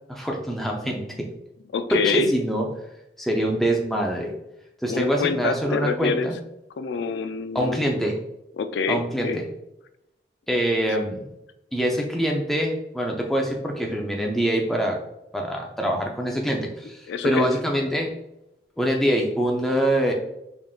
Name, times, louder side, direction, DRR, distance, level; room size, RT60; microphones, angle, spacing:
voice 1, 0.1-1.3 1.9-2.7 3.2-4.3 4.8-6.3 7.5-8.2 8.9-9.3 10.5-11.2 11.7-15.0 15.3-18.1 18.8-20.1, right 1 dB, ahead, 0 dB, 0.4 m, -24 dB
voice 2, 1.7-2.3 4.9-6.3 6.8-7.8 8.6-9.4 17.1-17.5, left 5 dB, 90° left, 10 dB, 0.3 m, -26 dB
3.6 x 3.5 x 2.4 m, 0.86 s
head